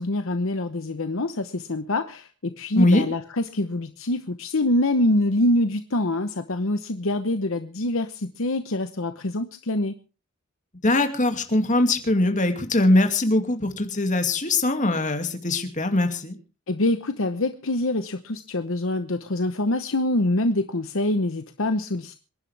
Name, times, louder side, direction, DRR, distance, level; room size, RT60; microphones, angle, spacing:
voice 1, 0.0-9.9 16.7-22.2, left 1 dB, 60° left, 9 dB, 1.0 m, -25 dB
voice 2, 2.7-3.0 10.8-16.4, left 2 dB, 35° left, 6 dB, 2.3 m, -21 dB
27.0 x 11.0 x 3.4 m, 0.33 s
head